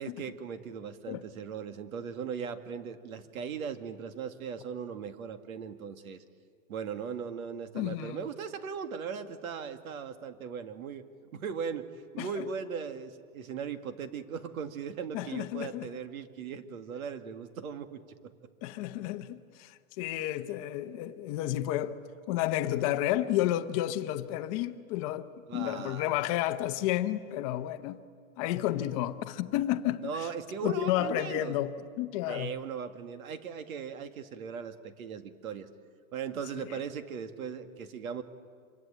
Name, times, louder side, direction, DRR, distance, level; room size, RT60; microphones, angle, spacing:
voice 1, 0.0-6.2 6.7-11.0 11.3-11.9 12.1-18.3 25.5-26.1 30.0-31.6 32.3-35.7 36.1-38.2, right 6 dB, 80° right, 2.2 m, -38 dB
voice 2, 7.7-8.2 12.2-12.4 15.1-15.9 18.6-21.9 22.3-25.3 25.5-28.0 28.4-30.3 30.6-31.7 32.0-32.5 36.6-36.7, left 13 dB, 25° left, 0.8 m, -31 dB
26.5 x 23.5 x 9.1 m
supercardioid pair, 170°, 42 cm